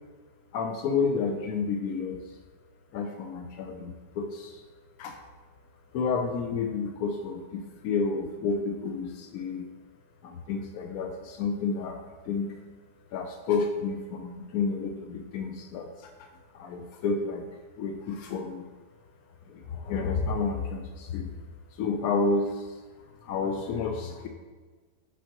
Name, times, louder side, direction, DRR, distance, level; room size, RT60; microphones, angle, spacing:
voice 1, 0.5-2.2 2.9-4.6 5.0-5.2 5.9-9.7 10.2-12.0 12.3-12.6 13.1-16.1 16.5-17.4 17.8-18.7 19.5-21.3 21.8-22.8 23.2-24.3, left 4 dB, 80° left, 4 dB, 0.8 m, -30 dB
6.2 x 5.3 x 2.9 m, 1.4 s
omnidirectional pair, 2.1 m